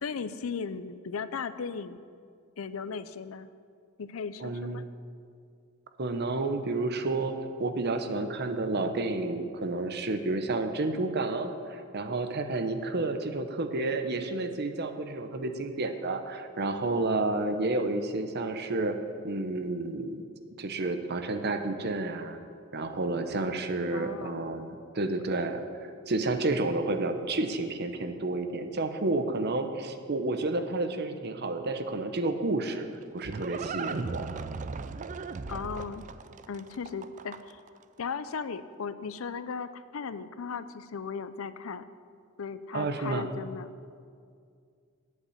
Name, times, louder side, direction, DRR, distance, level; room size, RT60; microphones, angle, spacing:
voice 1, 0.0-2.0 2.6-3.5 4.0-4.8 23.9-24.5 35.5-36.0 36.5-37.6 38.0-41.8 42.4-43.7, left 5 dB, 90° left, 14 dB, 0.5 m, -37 dB
voice 2, 4.4-4.9 6.0-19.0 19.2-20.3 20.6-22.4 22.7-25.6 26.1-32.9 33.1-34.2 42.7-43.2, right 2 dB, 55° right, 8 dB, 0.8 m, -30 dB
Livestock farm animals working animals, 32.6-37.7, right 4 dB, 35° right, 0.4 m, -37 dB
8.3 x 8.2 x 8.5 m, 2.2 s
head